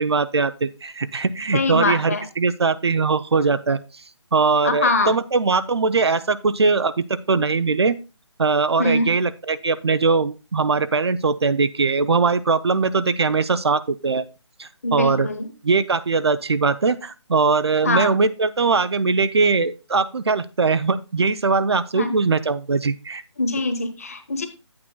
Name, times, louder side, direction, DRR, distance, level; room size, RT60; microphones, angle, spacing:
voice 1, 0.0-3.8 4.3-8.0 8.4-14.2 14.6-15.3 15.6-23.2, right 4 dB, 60° right, 13 dB, 0.5 m, -21 dB
voice 2, 1.5-2.2 4.6-5.1 8.8-9.1 14.8-15.5 17.8-18.1 21.9-22.1 23.4-24.5, left 2 dB, 30° left, 8 dB, 1.0 m, -23 dB
10.5 x 8.6 x 2.3 m, 0.31 s
hypercardioid pair, 180°, 15 cm